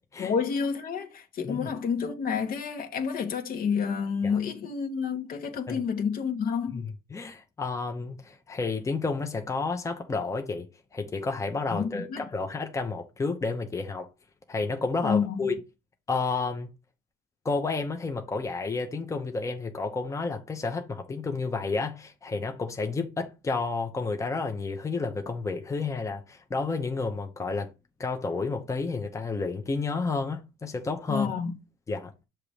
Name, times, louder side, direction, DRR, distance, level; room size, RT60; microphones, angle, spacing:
voice 1, 0.2-6.8 11.7-12.3 15.0-15.6 31.1-31.5, left 6 dB, 60° left, 1.3 m, -29 dB
voice 2, 6.7-10.7 10.9-14.1 14.5-15.6 16.1-16.7 17.4-27.7 28.0-31.3 31.9-32.1, left 3 dB, 20° left, 0.8 m, -31 dB
6.7 x 3.0 x 5.0 m
cardioid pair, 110°, 17 cm